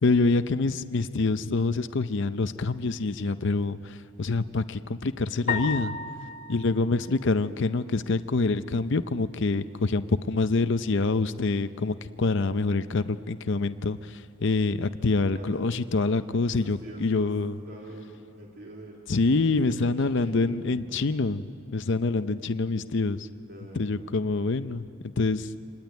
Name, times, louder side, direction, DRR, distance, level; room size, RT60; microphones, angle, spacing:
voice 1, 0.0-5.9 6.5-17.5 19.1-21.4 21.7-23.3 23.8-24.8 25.2-25.5, left 3 dB, 55° left, 11 dB, 0.6 m, -26 dB
sound 1, 5.5-7.9, left 4 dB, 40° left, 1.5 m, -34 dB
voice 2, 15.3-15.8 16.4-21.2 23.5-24.3 24.7-24.9, right 1 dB, 45° right, -2 dB, 2.6 m, -46 dB
25.5 x 19.5 x 9.4 m, 2.5 s
head